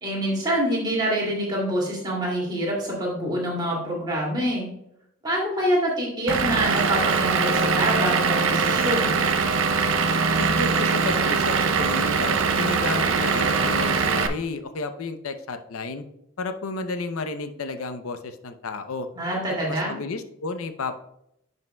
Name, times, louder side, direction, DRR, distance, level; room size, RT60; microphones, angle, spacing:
voice 1, 0.0-4.7 5.2-9.2 19.1-19.9, equal, 20° right, -4 dB, 2.4 m, -26 dB
Vehicle / Engine, 6.3-14.3, right 5 dB, 65° right, 0.6 m, -22 dB
voice 2, 10.4-16.0 16.4-19.1 19.7-21.0, left 3 dB, 85° left, 8 dB, 0.6 m, -32 dB
10.5 x 5.4 x 2.2 m, 0.78 s
head